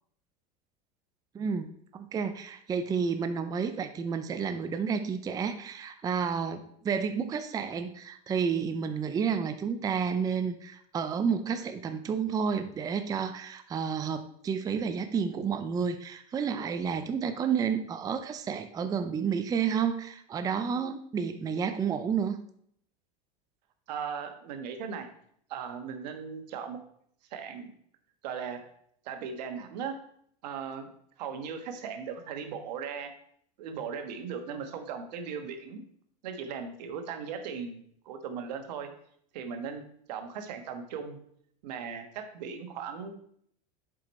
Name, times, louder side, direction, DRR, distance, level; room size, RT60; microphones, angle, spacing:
voice 1, 1.3-22.4, right 6 dB, 15° right, 9 dB, 0.5 m, -30 dB
voice 2, 23.9-25.1 25.5-26.8 27.3-27.7 28.2-28.6 29.0-29.9 30.4-30.9 31.2-33.1 33.6-35.8 36.2-38.9 39.3-39.8 40.1-41.2 41.6-43.1, right 6 dB, 80° right, 6 dB, 1.3 m, -38 dB
7.7 x 5.0 x 4.2 m, 0.66 s
supercardioid pair, 130°, 21 cm